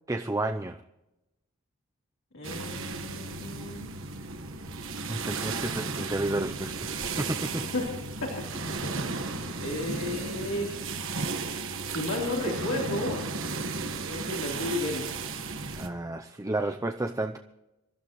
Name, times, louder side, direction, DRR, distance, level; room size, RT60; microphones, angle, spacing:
voice 1, 0.1-0.8 5.1-7.6 15.8-17.4, right 2 dB, 15° right, 0.6 m, -31 dB
voice 2, 2.3-3.9 7.5-7.9 8.2-8.4 8.8-8.9 9.6-10.7 11.9-13.2 14.1-15.2, left 2 dB, 75° left, 3.6 m, -33 dB
sound 1, 2.4-15.9, right 3 dB, 60° right, 1.5 m, -34 dB
26.5 x 12.5 x 3.1 m
head